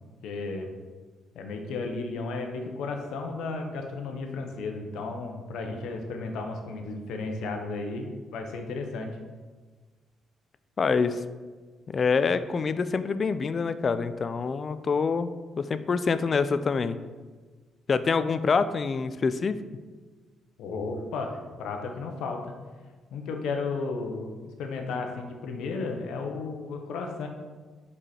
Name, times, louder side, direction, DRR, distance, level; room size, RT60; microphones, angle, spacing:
voice 1, 0.2-0.7 1.3-9.1 20.6-22.5 23.1-24.3 24.6-27.3, left 3 dB, 85° left, 4 dB, 0.9 m, -34 dB
voice 2, 10.8-11.2 11.9-17.0 17.9-19.6, left 5 dB, 40° left, 12 dB, 0.4 m, -26 dB
5.2 x 4.8 x 4.3 m, 1.4 s
cardioid pair, 90°, 0 cm